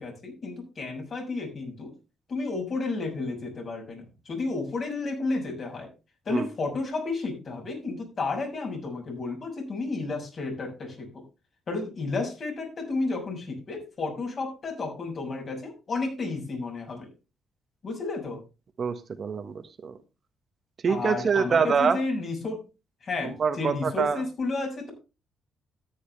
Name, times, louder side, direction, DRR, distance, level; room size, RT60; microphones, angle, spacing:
voice 1, 0.0-1.9 2.3-5.9 6.2-11.1 11.7-17.1 17.8-18.4 20.9-22.6 23.0-24.9, left 3 dB, 50° left, 2 dB, 6.5 m, -32 dB
voice 2, 18.8-19.9 20.8-22.0 23.2-24.2, right 6 dB, 45° right, 8 dB, 1.5 m, -25 dB
13.0 x 9.6 x 3.4 m, 0.29 s
cardioid pair, 90°, 0 cm